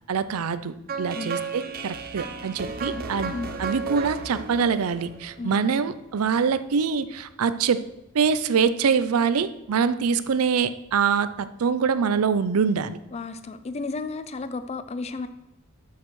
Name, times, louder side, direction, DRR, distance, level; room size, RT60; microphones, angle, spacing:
voice 1, 0.1-7.8 8.1-13.0, right 6 dB, 80° right, 14 dB, 0.5 m, -24 dB
sound 1, 0.9-5.9, right 4 dB, 45° right, 0.7 m, -34 dB
voice 2, 2.6-3.5 5.4-5.9 13.1-15.3, left 3 dB, 30° left, 11 dB, 0.4 m, -34 dB
12.5 x 6.5 x 3.1 m, 0.95 s
head